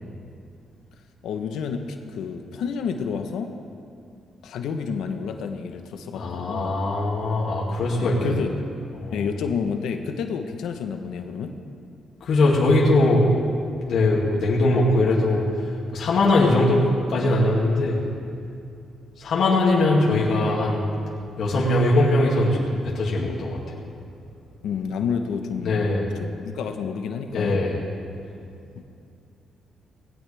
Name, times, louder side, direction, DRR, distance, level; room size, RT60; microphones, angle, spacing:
voice 1, 1.2-3.5 4.4-6.8 8.0-8.5 9.1-11.6 24.6-27.6 28.7-28.8, left 6 dB, 85° left, 6 dB, 1.0 m, -30 dB
voice 2, 6.1-8.5 9.0-9.2 12.2-13.3 13.9-15.6 15.9-18.0 19.2-20.9 21.4-23.8 25.6-26.1 27.3-27.8, left 2 dB, 65° left, -5 dB, 2.4 m, -21 dB
18.5 x 17.5 x 3.5 m, 2.6 s
cardioid pair, 95°, 0 cm